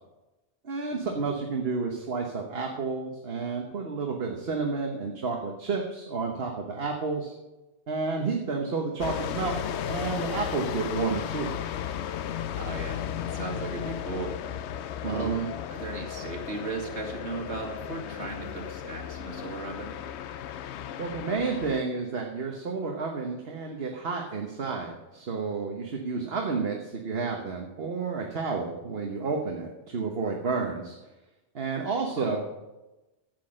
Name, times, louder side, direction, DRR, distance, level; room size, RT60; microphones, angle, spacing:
voice 1, 0.6-7.3 7.9-11.5 15.0-15.5 21.0-30.9 31.5-32.7, right 4 dB, 60° right, 1 dB, 1.4 m, -31 dB
sound 1, 9.0-21.8, left 9 dB, 75° left, 0.9 m, -35 dB
voice 2, 12.6-14.3 15.0-15.3 15.7-20.0 32.1-32.3, right 3 dB, 75° right, 1 dB, 2.4 m, -36 dB
13.0 x 7.9 x 6.4 m, 1.1 s
omnidirectional pair, 1.1 m